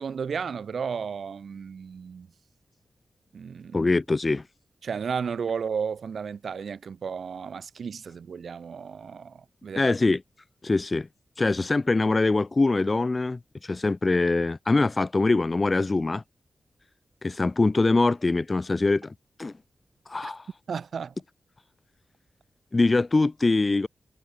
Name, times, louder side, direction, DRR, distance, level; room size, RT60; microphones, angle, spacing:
voice 1, 0.0-2.3 3.3-3.9 4.8-9.9 20.2-20.3 20.7-21.1, right 6 dB, 75° right, 0.4 m, -33 dB
voice 2, 3.7-4.4 9.7-10.2 10.6-11.1 11.4-16.2 17.2-19.1 19.4-19.5 20.1-20.5 22.7-23.9, left 3 dB, 30° left, 0.7 m, -23 dB
wide cardioid pair, 120°, 0 cm